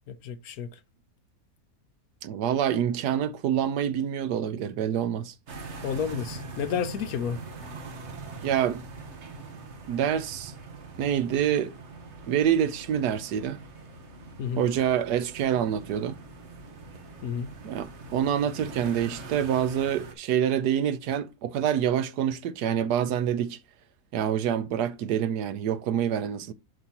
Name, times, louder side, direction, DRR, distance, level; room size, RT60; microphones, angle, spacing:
voice 1, 0.1-0.7 5.8-7.4 14.4-14.6 17.2-17.5, left 7 dB, 70° left, 1.2 m, -31 dB
voice 2, 2.2-5.3 8.4-8.8 9.9-10.5 11.0-11.8 12.3-13.6 14.6-16.2 17.6-23.6 24.1-26.5, right 9 dB, 80° right, 1.3 m, -26 dB
sound 1, 5.5-20.1, right 3 dB, 45° right, 1.4 m, -43 dB
7.8 x 5.7 x 2.9 m
omnidirectional pair, 1.7 m